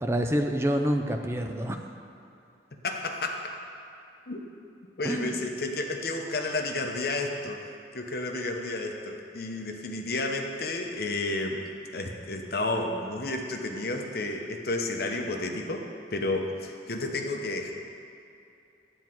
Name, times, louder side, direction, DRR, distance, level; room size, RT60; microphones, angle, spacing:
voice 1, 0.0-1.8 5.0-5.4, equal, 15° right, 5 dB, 0.5 m, -27 dB
voice 2, 2.8-3.5 4.3-4.4 5.0-7.6 7.9-11.6 11.9-17.7, left 2 dB, 60° left, 2 dB, 0.9 m, -31 dB
9.7 x 4.5 x 7.6 m, 2.7 s
head